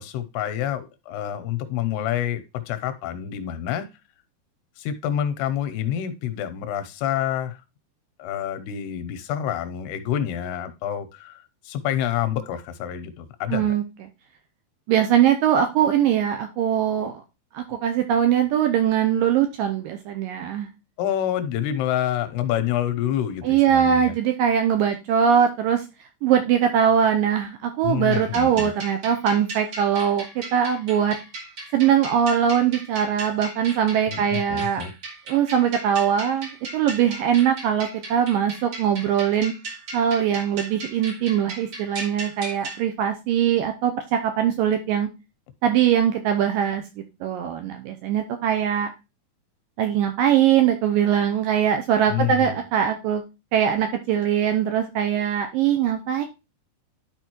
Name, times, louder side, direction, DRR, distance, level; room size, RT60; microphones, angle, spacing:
voice 1, 0.0-3.9 4.8-7.6 8.2-13.7 21.0-24.1 27.8-28.7 34.1-34.9 52.1-52.6, left 10 dB, 90° left, 10 dB, 2.8 m, -27 dB
voice 2, 13.5-13.8 14.9-17.2 17.5-20.7 23.4-25.8 26.2-31.2 31.7-34.8 35.3-39.5 39.9-45.1 45.6-48.9 49.8-53.2 53.5-56.2, right 9 dB, 80° right, 6 dB, 2.1 m, -21 dB
sound 1, 28.1-42.8, right 2 dB, 45° right, 1.9 m, -37 dB
11.5 x 4.5 x 3.0 m, 0.26 s
omnidirectional pair, 4.7 m